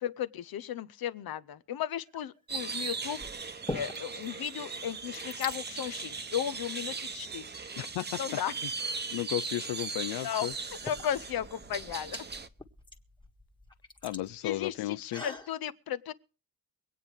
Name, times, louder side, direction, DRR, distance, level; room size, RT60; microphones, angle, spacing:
voice 1, 0.0-3.3 3.7-7.4 8.2-8.5 10.2-10.5 10.8-12.2 14.4-16.1, left 10 dB, 65° left, 0.8 m, -35 dB
sound 1, 2.0-2.4 3.2-4.3 4.6-4.7 4.9-5.6 6.4-6.5 7.1-8.0 9.7-9.8 10.5-15.5, left 2 dB, 10° left, 1.5 m, -43 dB
sound 2, 2.5-12.5, right 4 dB, 25° right, 0.9 m, -38 dB
voice 2, 7.8-8.2 8.6-8.7 9.1-10.5 14.0-15.2, left 15 dB, 85° left, 0.5 m, -34 dB
24.0 x 9.1 x 3.5 m
cardioid pair, 110°, 39 cm